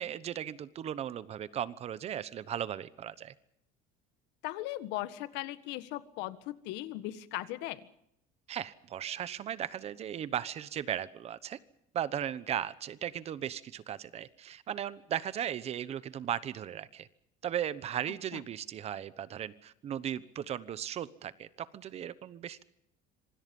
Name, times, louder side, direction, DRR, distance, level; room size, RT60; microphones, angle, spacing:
voice 1, 0.0-3.3 8.5-11.6 11.9-17.1 17.4-22.6, right 10 dB, 35° right, 16 dB, 1.0 m, -37 dB
voice 2, 4.4-7.9, left 15 dB, 75° left, 13 dB, 1.7 m, -38 dB
26.5 x 24.5 x 5.4 m, 0.76 s
cardioid pair, 155°, 18 cm